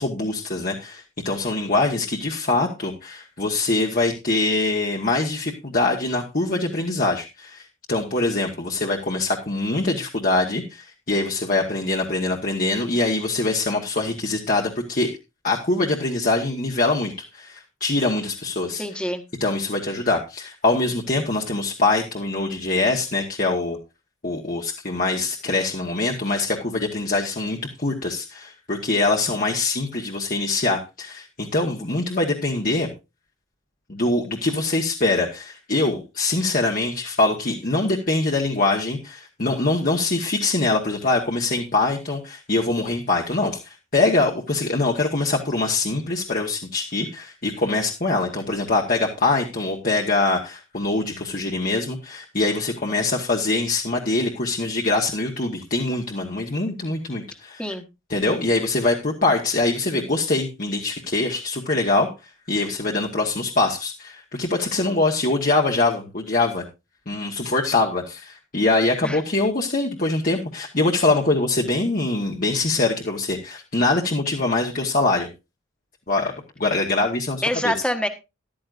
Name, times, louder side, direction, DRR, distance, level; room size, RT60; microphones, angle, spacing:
voice 1, 0.0-15.1 15.4-18.8 19.4-23.8 24.2-32.9 33.9-57.7 58.1-62.1 62.5-66.6 67.1-75.3 76.1-76.3 76.6-77.7, left 2 dB, 40° left, 1 dB, 1.4 m, -23 dB
voice 2, 18.6-19.2 57.6-57.8 69.0-69.2 77.4-78.1, left 1 dB, 5° left, 6 dB, 1.3 m, -26 dB
14.0 x 12.0 x 2.6 m, 0.27 s
head